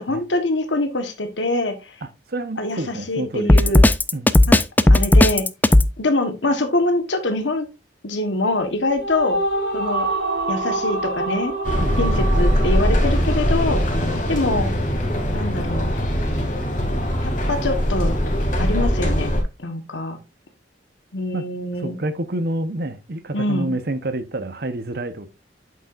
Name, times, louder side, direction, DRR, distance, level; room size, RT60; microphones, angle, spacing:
voice 1, 0.0-2.0 2.6-3.9 4.5-4.6 4.9-5.5 6.0-7.7 8.0-9.4 9.7-10.1 10.5-11.5 12.0-13.8 14.3-14.7 15.3-15.9 17.2-18.1 18.6-19.3 19.6-20.2 21.1-21.9 23.3-23.7, left 2 dB, 85° left, 1.3 m, -24 dB
voice 2, 2.0-3.7 4.1-4.3 11.8-12.0 14.0-14.1 21.3-21.5 21.8-25.3, right 2 dB, 60° right, 1.0 m, -28 dB
Drum kit, 3.5-5.9, left 1 dB, 10° left, 0.3 m, -13 dB
sound 1, 8.6-14.1, right 2 dB, 80° right, 4.6 m, -26 dB
sound 2, 11.6-19.4, equal, 45° left, 2.4 m, -21 dB
8.4 x 6.9 x 2.5 m
head